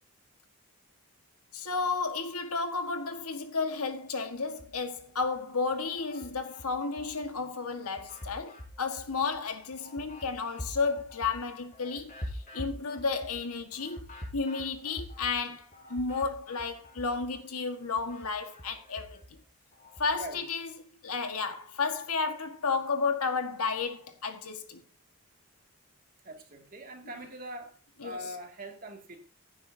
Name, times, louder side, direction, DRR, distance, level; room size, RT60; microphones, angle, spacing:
voice 1, 1.5-14.0 14.3-19.2 20.0-20.7 21.0-24.8 28.0-28.2, left 4 dB, 90° left, 1.7 m, -32 dB
sound 1, 4.5-5.3 5.7-7.3 7.7-17.4 17.7-20.3, left 1 dB, 35° left, 4.8 m, -46 dB
voice 2, 20.1-20.4 26.2-27.8 28.0-29.2, right 1 dB, 40° right, 2.4 m, -42 dB
16.0 x 9.7 x 2.8 m
head